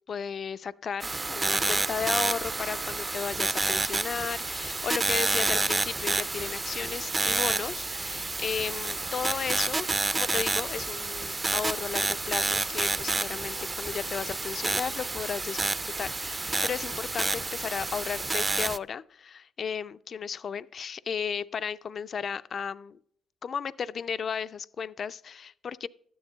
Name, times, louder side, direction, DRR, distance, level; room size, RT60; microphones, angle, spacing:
voice 1, 0.1-15.6 16.0-23.0 23.4-25.9, left 6 dB, 50° left, 0.4 m, -34 dB
sound 1, 1.0-18.8, right 2 dB, 20° right, 0.5 m, -29 dB
12.5 x 9.3 x 4.0 m
cardioid pair, 90°, 0 cm